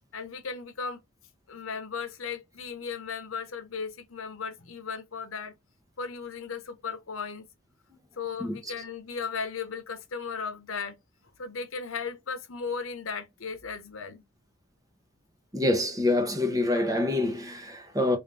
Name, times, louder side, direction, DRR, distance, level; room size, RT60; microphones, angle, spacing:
voice 1, 0.1-1.0 1.5-5.5 6.0-7.4 8.2-11.0 11.4-14.2, left 5 dB, 80° left, 0.8 m, -36 dB
voice 2, 15.5-18.2, left 2 dB, 15° right, 0.7 m, -26 dB
3.7 x 2.5 x 3.3 m
head